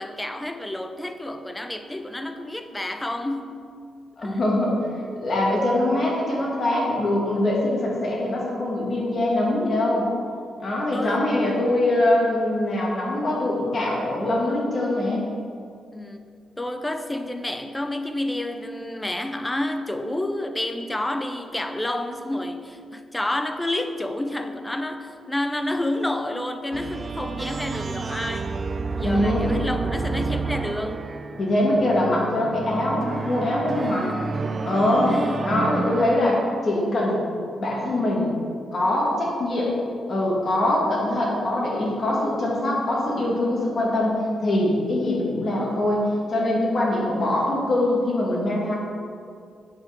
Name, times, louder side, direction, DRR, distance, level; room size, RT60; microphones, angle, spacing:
voice 1, 0.0-3.6 4.2-4.5 10.9-11.2 15.9-16.3 16.6-28.6 28.9-31.1 33.8-33.9 35.1-35.5, left 1 dB, 10° left, 8 dB, 0.6 m, -29 dB
voice 2, 4.2-4.8 5.2-10.1 10.6-15.3 29.0-29.5 31.4-34.1 34.6-35.1 35.4-37.2 37.6-38.3 38.7-39.8 40.1-46.0 46.3-48.7, left 1 dB, 45° left, -4 dB, 2.2 m, -23 dB
sound 1, 26.7-36.8, right 4 dB, 40° right, 0.3 m, -30 dB
8.5 x 4.7 x 6.0 m, 2.4 s
cardioid pair, 115°, 0 cm